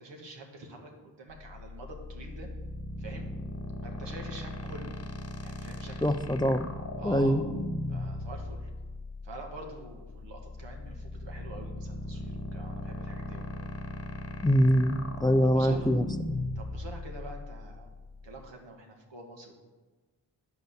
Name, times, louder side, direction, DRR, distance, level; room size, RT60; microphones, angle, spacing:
voice 1, 0.0-2.5 3.0-3.3 3.8-5.0 5.4-6.0 7.0-7.4 7.9-8.7 9.2-13.5 15.5-16.0 16.6-17.9 18.2-19.5, right 2 dB, 85° right, 2 dB, 1.6 m, -45 dB
sound 1, 1.3-18.5, left 2 dB, 35° left, 1.0 m, -38 dB
voice 2, 6.0-6.7 7.0-7.4 14.4-16.1, equal, 10° left, 9 dB, 0.4 m, -24 dB
9.3 x 5.2 x 6.5 m, 1.3 s
cardioid pair, 60°, 42 cm